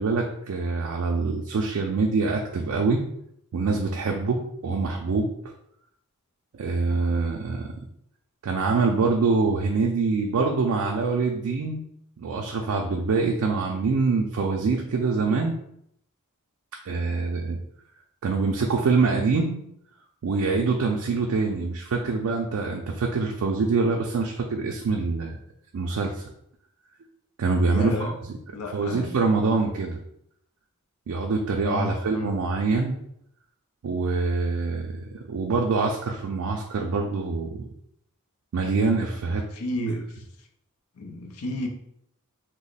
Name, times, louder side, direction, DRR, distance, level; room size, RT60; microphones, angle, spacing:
voice 1, 0.0-3.0 3.5-5.3 6.5-7.7 8.4-11.8 12.2-15.5 16.9-17.6 18.2-19.5 20.2-25.4 25.7-26.3 27.4-28.4 28.7-30.0 31.1-32.9 33.8-37.6 38.5-39.4, right 4 dB, 65° right, 1 dB, 0.4 m, -25 dB
voice 2, 27.7-28.1 28.5-29.1 31.6-32.3 39.5-40.0 41.0-41.7, left 1 dB, 80° left, 3 dB, 0.6 m, -31 dB
3.0 x 2.0 x 3.9 m, 0.73 s
head